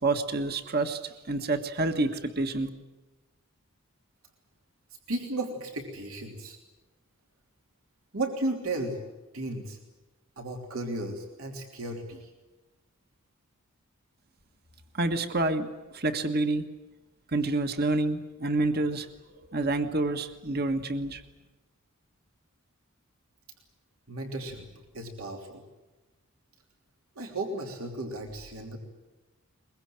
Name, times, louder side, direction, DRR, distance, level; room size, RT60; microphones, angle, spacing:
voice 1, 0.0-2.7 14.9-15.7 15.9-16.7 17.3-19.1 19.5-21.2, right 2 dB, 50° right, 7 dB, 1.7 m, -28 dB
voice 2, 5.1-6.6 8.1-9.0 9.3-9.8 10.4-12.3 24.1-25.6 27.1-28.8, right 2 dB, 80° right, 2 dB, 3.1 m, -34 dB
23.0 x 22.0 x 8.8 m, 1.1 s
head